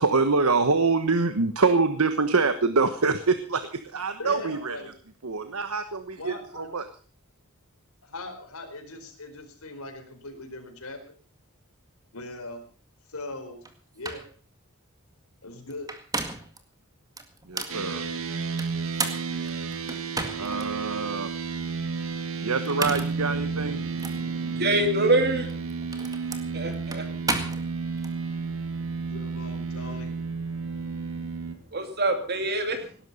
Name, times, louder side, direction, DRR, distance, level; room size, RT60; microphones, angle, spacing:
voice 1, 0.0-4.8 5.2-6.8 17.5-18.0 20.3-21.3 22.4-23.8, right 4 dB, 85° right, 10 dB, 1.3 m, -25 dB
voice 2, 4.2-4.9 6.2-6.8 8.0-11.1 12.1-12.6 13.1-13.6 13.9-14.2 15.4-15.9 29.0-30.1, left 2 dB, 85° left, 5 dB, 4.6 m, -39 dB
sound 1, 13.6-13.7 14.0-14.3 15.7-16.6 17.2-17.8 18.6-20.7 21.2-21.3 22.5-23.2 24.0-24.2 25.4-28.1, right 3 dB, 15° right, 1.9 m, -33 dB
sound 2, 17.7-31.5, right 5 dB, 70° right, 2.3 m, -32 dB
voice 3, 24.1-25.5 26.5-27.0 31.7-32.9, right 2 dB, 50° right, 6 dB, 2.6 m, -25 dB
18.5 x 11.5 x 5.6 m, 0.41 s
head